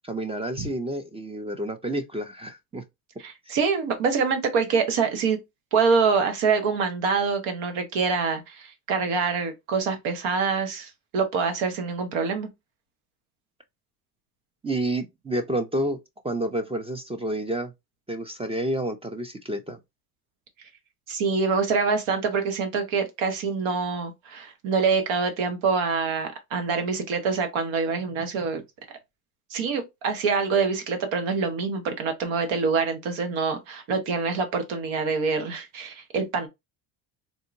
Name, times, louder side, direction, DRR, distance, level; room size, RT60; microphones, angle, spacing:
voice 1, 0.0-2.8 14.6-16.0 16.2-17.7 18.1-19.8, right 1 dB, 15° right, 0.4 m, -29 dB
voice 2, 3.2-5.4 5.7-12.5 21.1-28.6 29.5-36.5, right 5 dB, 70° right, 1.3 m, -25 dB
3.7 x 2.7 x 2.6 m
cardioid pair, 105°, 49 cm